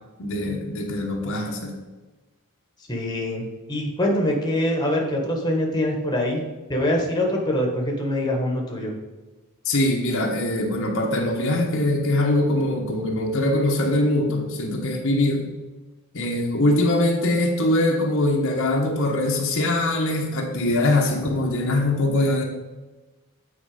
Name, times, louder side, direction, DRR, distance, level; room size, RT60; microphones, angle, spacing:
voice 1, 0.2-1.7 9.6-15.4 16.1-22.4, left 1 dB, 65° left, 1 dB, 1.2 m, -22 dB
voice 2, 2.9-8.9, left 1 dB, 20° left, 0 dB, 1.4 m, -24 dB
8.9 x 4.4 x 5.0 m, 1.2 s
head